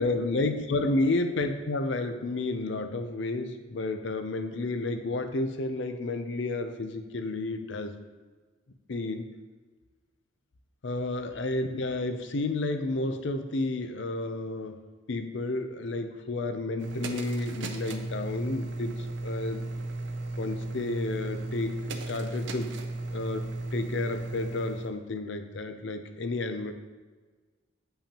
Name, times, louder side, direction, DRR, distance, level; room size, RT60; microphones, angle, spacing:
voice 1, 0.0-8.0 8.9-9.3 10.8-14.8 15.1-19.7 20.4-22.7 23.1-26.7, left 2 dB, 65° left, 8 dB, 0.6 m, -31 dB
sound 1, 16.8-24.9, right 2 dB, 60° right, 0.6 m, -35 dB
8.5 x 5.5 x 2.9 m, 1.3 s
head